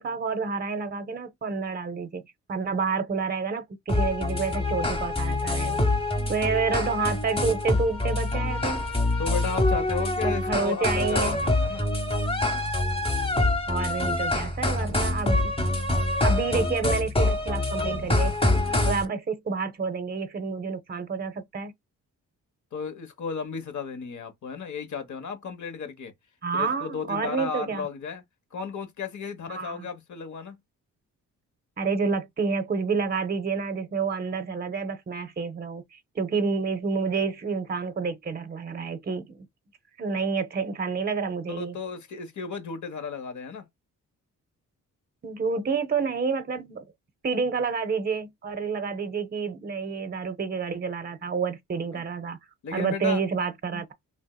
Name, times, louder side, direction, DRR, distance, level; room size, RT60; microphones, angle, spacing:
voice 1, 0.0-5.9 6.3-8.8 10.2-11.4 13.7-15.5 16.2-21.7 26.4-27.9 29.5-29.9 31.8-39.5 40.0-41.8 45.2-46.8 47.2-52.4 52.7-53.9, right 5 dB, 30° right, 0.6 m, -29 dB
sound 1, 3.9-19.1, left 2 dB, 15° left, 1.0 m, -25 dB
voice 2, 6.1-6.5 9.2-11.9 18.6-18.9 22.7-26.1 26.5-28.2 28.5-30.6 41.5-43.6 51.9-52.0 52.6-53.2, left 5 dB, 60° left, 1.1 m, -34 dB
3.4 x 2.7 x 2.2 m
cardioid pair, 70°, 33 cm